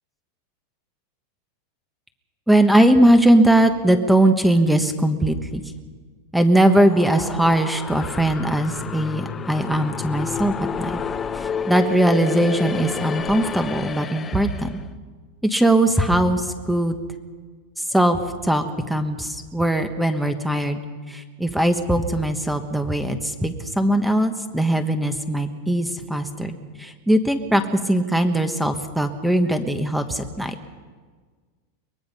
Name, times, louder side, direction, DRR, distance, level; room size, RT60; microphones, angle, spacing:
voice 1, 2.5-5.6 6.3-11.0 11.3-14.7 15.4-17.0 17.9-20.8 21.1-26.5 26.8-30.5, right 1 dB, ahead, 7 dB, 1.1 m, -20 dB
sound 1, 6.5-14.8, left 6 dB, 15° left, 0.6 m, -30 dB
23.0 x 20.5 x 5.5 m, 1.5 s
supercardioid pair, 160°, 0 cm